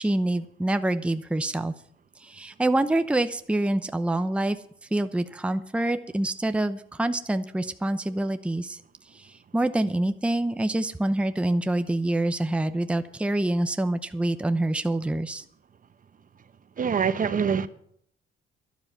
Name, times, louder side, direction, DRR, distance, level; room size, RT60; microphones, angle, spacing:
voice 1, 0.0-1.7 2.2-4.6 4.9-8.8 9.1-15.4, right 1 dB, 5° right, 0.7 m, -26 dB
voice 2, 16.8-17.7, right 6 dB, 45° right, 1.0 m, -24 dB
12.0 x 10.5 x 6.7 m
cardioid pair, 90°, 20 cm